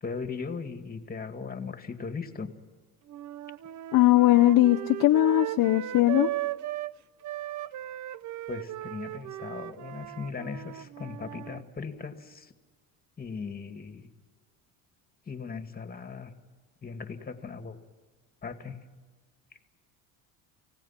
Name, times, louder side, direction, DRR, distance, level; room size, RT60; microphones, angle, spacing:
voice 1, 0.0-2.5 8.5-12.5 13.2-14.1 15.3-16.3 16.8-17.8 18.4-18.8, left 5 dB, 25° left, 7 dB, 2.3 m, -38 dB
sound 1, 3.1-6.9 7.2-11.6, right 14 dB, 50° right, 0.7 m, -37 dB
voice 2, 3.9-6.3, left 15 dB, 60° left, 6 dB, 0.8 m, -20 dB
30.0 x 17.5 x 5.9 m, 1.3 s
cardioid pair, 105°, 38 cm